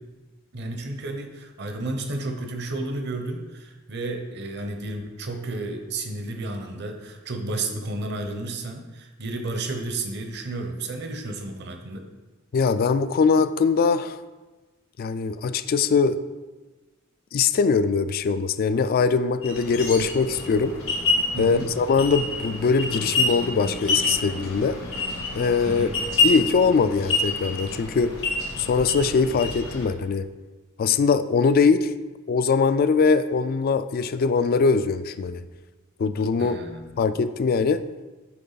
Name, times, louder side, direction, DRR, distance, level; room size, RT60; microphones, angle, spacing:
voice 1, 0.5-12.1 21.3-21.7 25.6-25.9 36.4-37.1, right 2 dB, 55° right, 4 dB, 0.8 m, -32 dB
voice 2, 12.5-14.2 15.0-16.2 17.3-20.7 21.4-24.8 25.3-25.9 26.2-28.1 28.6-30.3 30.8-31.9 32.3-35.4 36.0-36.6 37.0-37.8, left 5 dB, 45° left, 13 dB, 0.3 m, -22 dB
sound 1, 19.4-29.9, left 3 dB, 85° left, 2.1 m, -28 dB
9.3 x 3.4 x 4.0 m, 1.2 s
head